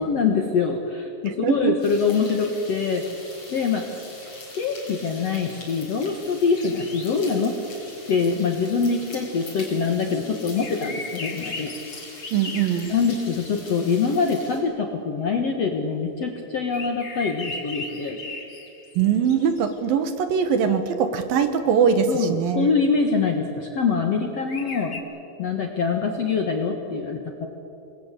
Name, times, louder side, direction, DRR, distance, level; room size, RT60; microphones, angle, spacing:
voice 1, 0.0-3.0 3.5-4.0 4.6-7.6 8.1-11.7 12.9-18.2 22.1-25.0 25.4-27.5, left 5 dB, 60° left, 3 dB, 1.7 m, -24 dB
voice 2, 1.4-1.8 12.3-12.9 19.0-22.7, right 7 dB, 70° right, 9 dB, 2.7 m, -21 dB
sound 1, 1.8-14.6, left 2 dB, 30° left, 5.9 m, -43 dB
sound 2, 6.5-7.5 10.6-13.6 16.7-19.8 24.4-25.0, left 3 dB, 80° left, 0.6 m, -37 dB
27.0 x 21.5 x 8.2 m, 2.9 s
omnidirectional pair, 4.8 m